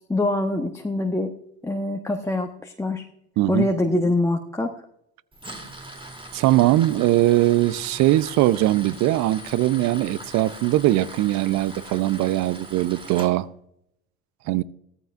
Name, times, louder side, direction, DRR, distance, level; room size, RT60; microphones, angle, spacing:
voice 1, 0.0-1.3 1.6-3.0 3.5-4.7, left 2 dB, 10° left, 1.0 m, -24 dB
voice 2, 3.4-3.7 6.3-13.5 14.5-14.6, right 15 dB, 55° right, 0.7 m, -21 dB
Tools, 5.3-13.3, right 1 dB, 15° right, 3.1 m, -40 dB
16.5 x 14.0 x 2.6 m
hypercardioid pair, 70°, 34 cm